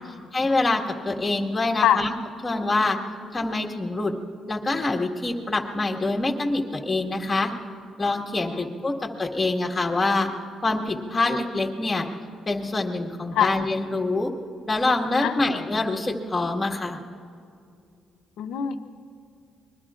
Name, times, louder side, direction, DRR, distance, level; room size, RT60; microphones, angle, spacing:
voice 1, 0.3-2.1 2.4-3.0 3.3-4.1 4.5-7.5 8.0-10.3 10.6-12.1 12.5-14.3 14.7-17.0, left 2 dB, 20° left, 1 dB, 1.8 m, -25 dB
voice 2, 15.2-15.6 18.4-18.8, left 10 dB, 80° left, 8 dB, 0.8 m, -24 dB
25.5 x 21.5 x 2.5 m, 2.4 s
cardioid pair, 90°, 0 cm